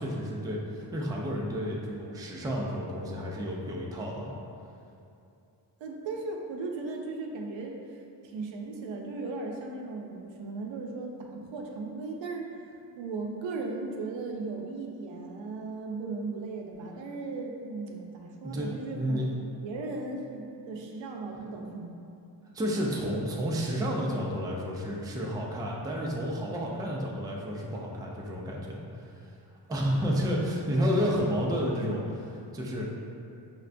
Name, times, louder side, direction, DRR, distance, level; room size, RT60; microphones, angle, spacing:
voice 1, 0.0-4.3 18.4-19.3 22.5-29.3 29.7-32.9, equal, 10° right, -3 dB, 0.3 m, -31 dB
voice 2, 5.8-7.8 8.2-12.5 13.0-19.3 19.6-21.9, right 3 dB, 85° right, 1 dB, 0.6 m, -37 dB
5.7 x 2.2 x 2.5 m, 2.6 s
wide cardioid pair, 125°, 44 cm